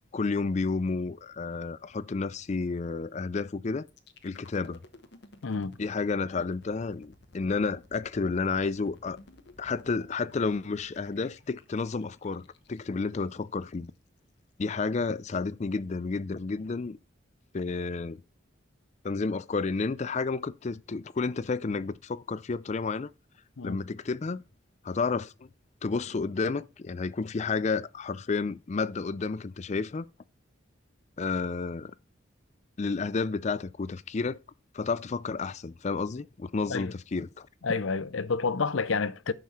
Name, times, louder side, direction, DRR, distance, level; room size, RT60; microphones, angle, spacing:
voice 1, 0.1-3.9 4.2-4.8 5.8-9.2 9.6-13.9 14.6-17.0 17.5-18.2 19.0-23.1 23.6-24.4 24.8-25.5 25.8-30.1 31.2-31.9 32.8-34.4 34.7-37.5, left 4 dB, 35° left, 0.4 m, -31 dB
sound 1, 3.9-13.9, left 2 dB, 60° left, 1.1 m, -55 dB
voice 2, 5.4-5.7 23.6-23.8 36.7-36.9 37.6-39.3, left 4 dB, 85° left, 0.6 m, -29 dB
10.5 x 6.7 x 4.2 m
head